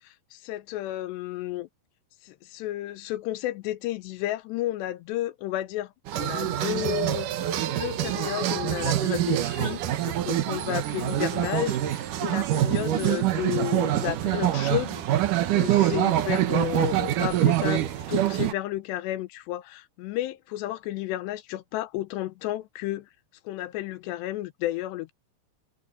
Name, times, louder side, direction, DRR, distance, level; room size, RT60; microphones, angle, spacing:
voice 1, 0.0-1.7 2.2-7.3 7.7-23.1 23.5-25.1, left 15 dB, 80° left, 2.6 m, -32 dB
sound 1, 6.1-18.5, right 13 dB, 80° right, 1.8 m, -25 dB
omnidirectional pair, 5.6 m